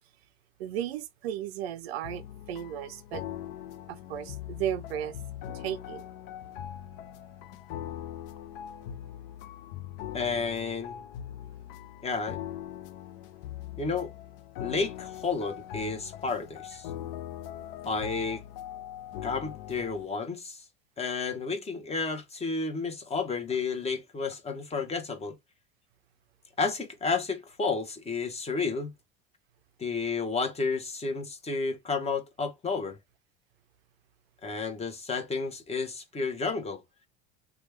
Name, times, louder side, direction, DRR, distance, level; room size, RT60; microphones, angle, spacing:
voice 1, 0.6-3.2 3.9-5.2 5.5-6.0, right 10 dB, 85° right, 0.5 m, -35 dB
sound 1, 2.0-20.1, left 11 dB, 70° left, 0.5 m, -41 dB
voice 2, 10.1-11.0 12.0-12.4 13.8-14.1 14.6-16.9 17.8-18.4 19.2-20.6 21.0-25.3 26.6-28.9 29.8-33.0 34.4-36.8, left 4 dB, 20° left, 1.0 m, -31 dB
3.2 x 2.3 x 3.3 m
hypercardioid pair, 90°, 30 cm